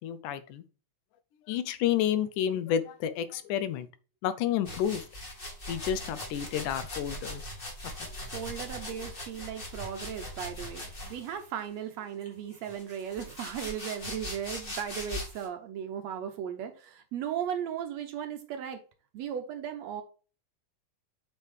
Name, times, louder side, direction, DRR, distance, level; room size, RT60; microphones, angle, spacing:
voice 1, 0.0-0.6 1.5-3.9 4.2-5.0 5.7-7.4, left 10 dB, 85° left, 2.2 m, -30 dB
sound 1, 4.6-11.4 12.2-15.5, left 1 dB, 30° left, 1.0 m, -40 dB
voice 2, 8.2-18.8 19.1-20.0, right 9 dB, 70° right, 1.8 m, -36 dB
8.3 x 4.6 x 3.3 m
omnidirectional pair, 3.6 m